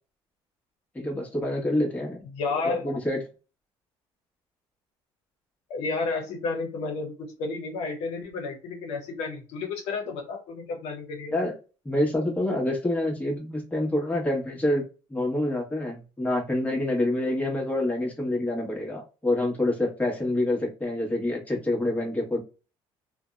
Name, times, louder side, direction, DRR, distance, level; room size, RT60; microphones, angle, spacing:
voice 1, 0.9-2.2 2.8-3.2 11.3-11.5 11.8-14.8 15.1-22.4, left 1 dB, 15° left, -1 dB, 1.1 m, -27 dB
voice 2, 2.3-2.9 5.7-11.3, left 3 dB, 75° left, 3 dB, 0.7 m, -31 dB
2.6 x 2.1 x 2.3 m, 0.32 s
cardioid pair, 95°, 11 cm